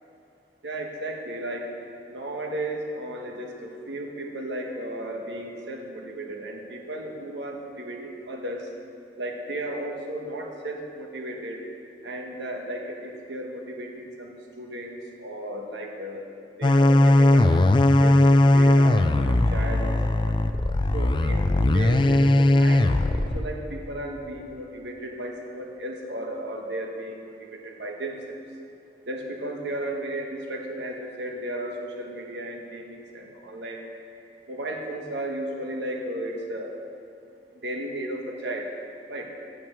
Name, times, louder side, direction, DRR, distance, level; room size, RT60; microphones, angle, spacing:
voice 1, 0.6-1.8 2.1-8.7 9.2-11.6 12.0-16.3 16.6-17.6 18.0-20.4 20.9-28.4 29.1-33.9 34.5-36.8 37.6-38.7 39.1-39.3, right 1 dB, 75° right, 1 dB, 1.4 m, -34 dB
sound 1, 16.6-23.4, left 1 dB, 25° left, 0.4 m, -19 dB
8.9 x 8.8 x 7.6 m, 2.6 s
head